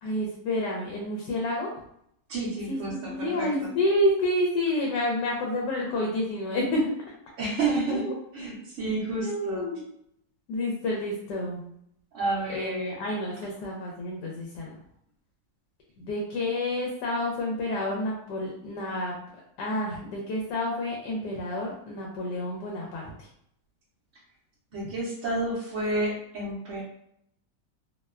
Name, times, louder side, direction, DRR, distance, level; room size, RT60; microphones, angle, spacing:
voice 1, 0.0-1.7 2.7-6.9 7.9-8.1 9.2-9.8 10.5-11.6 12.5-14.7 16.0-19.1 19.6-23.3, left 1 dB, 80° left, -1 dB, 1.2 m, -29 dB
voice 2, 2.3-3.7 7.4-9.7 12.1-13.0 24.7-26.8, right 2 dB, 65° right, -6 dB, 0.7 m, -30 dB
2.9 x 2.1 x 2.3 m, 0.73 s
omnidirectional pair, 1.8 m